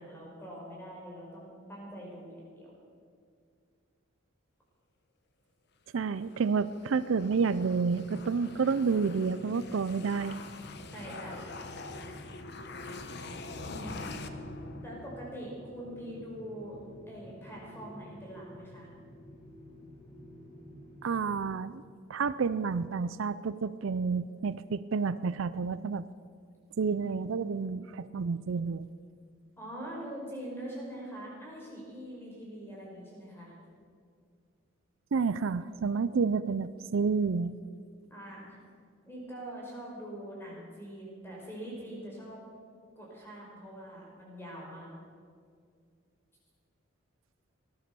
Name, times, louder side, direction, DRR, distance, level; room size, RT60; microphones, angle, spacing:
voice 1, 0.0-2.7 10.9-11.4 13.6-14.1 14.8-16.8 17.1-18.9 29.6-33.5 38.1-38.6 39.0-42.4 42.9-44.9, right 1 dB, 10° left, -4 dB, 4.9 m, -43 dB
voice 2, 5.9-10.4 21.0-21.8 22.1-26.0 26.8-28.9 35.1-37.6, right 5 dB, 65° right, 14 dB, 0.4 m, -30 dB
sound 1, 6.2-15.6, left 3 dB, 50° left, 1.0 m, -44 dB
sound 2, 7.3-21.5, equal, 35° left, 3.9 m, -51 dB
18.5 x 11.5 x 6.9 m, 2.2 s
head